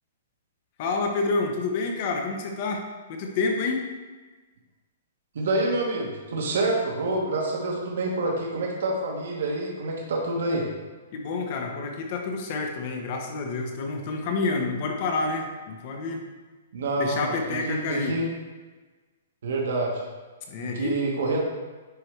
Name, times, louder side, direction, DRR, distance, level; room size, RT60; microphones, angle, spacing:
voice 1, 0.8-2.8 3.1-3.8 11.1-16.2 17.0-18.2 20.5-21.0, left 3 dB, 35° left, 3 dB, 1.0 m, -28 dB
voice 2, 5.3-10.7 16.7-18.2 19.4-20.0 20.6-21.4, right 2 dB, 70° right, -2 dB, 1.5 m, -27 dB
9.7 x 4.8 x 3.3 m, 1.3 s
hypercardioid pair, 170°, 0 cm